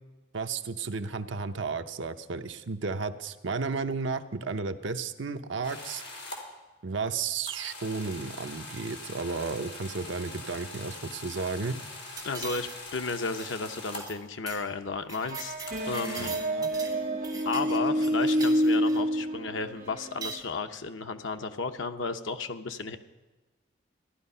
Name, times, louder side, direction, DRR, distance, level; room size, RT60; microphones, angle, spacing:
voice 1, 0.3-6.0 6.8-11.8 16.2-16.7, right 4 dB, 75° right, 8 dB, 0.7 m, -33 dB
sound 1, 5.6-6.4 7.5-14.2 15.7-16.3, left 2 dB, 60° left, 3.3 m, -43 dB
voice 2, 12.2-15.5 15.9-16.3 17.4-23.0, left 4 dB, 85° left, 7 dB, 0.9 m, -33 dB
sound 2, 12.2-12.9 13.2-13.5 13.9-14.2 14.5-14.6 14.9-17.0 17.2-19.0 20.0-20.4, right 4 dB, 20° right, 1.8 m, -42 dB
sound 3, 15.2-20.4, equal, 45° right, 1.5 m, -28 dB
14.5 x 11.5 x 5.6 m, 1.2 s
head